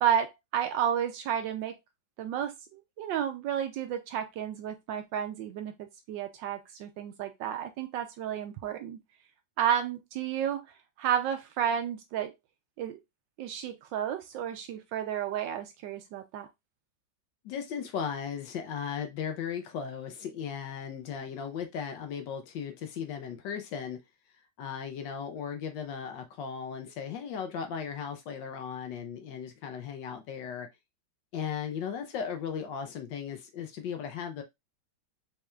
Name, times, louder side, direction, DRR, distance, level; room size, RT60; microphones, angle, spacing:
voice 1, 0.0-1.8 2.2-9.0 9.6-10.7 11.0-12.3 12.8-13.0 13.4-16.5, right 9 dB, 75° right, 1.1 m, -31 dB
voice 2, 17.4-24.0 24.6-30.7 31.3-34.4, left 7 dB, 70° left, 1.2 m, -36 dB
4.3 x 3.3 x 2.3 m
omnidirectional pair, 2.2 m